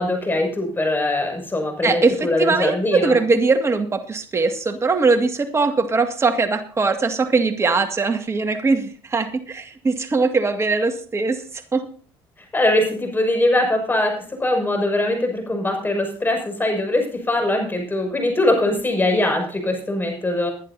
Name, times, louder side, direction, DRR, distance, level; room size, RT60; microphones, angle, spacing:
voice 1, 0.0-3.1 12.5-20.5, left 1 dB, 20° left, 3 dB, 6.2 m, -21 dB
voice 2, 1.8-11.9, right 4 dB, 25° right, 5 dB, 2.1 m, -21 dB
21.0 x 11.0 x 2.8 m, 0.41 s
supercardioid pair, 90°, 10 cm